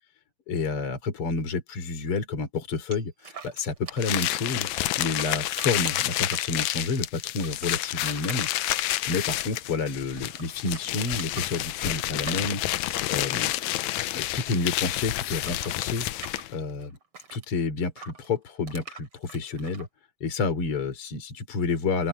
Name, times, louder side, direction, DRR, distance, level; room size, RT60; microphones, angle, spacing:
voice 1, 0.5-4.7 5.0-8.5 9.1-12.6 13.1-13.5 14.1-16.1 16.5-17.0 17.3-19.9 20.2-22.1, left 4 dB, 40° left, 3.9 m, -29 dB
sound 1, 2.9-4.4 4.7-6.9 7.3-9.9 10.1-14.3 14.6-17.5 18.0-19.9, right 5 dB, 40° right, 4.1 m, -45 dB
sound 2, 4.0-16.6, left 15 dB, 80° left, 1.6 m, -29 dB
open air
omnidirectional pair, 4.0 m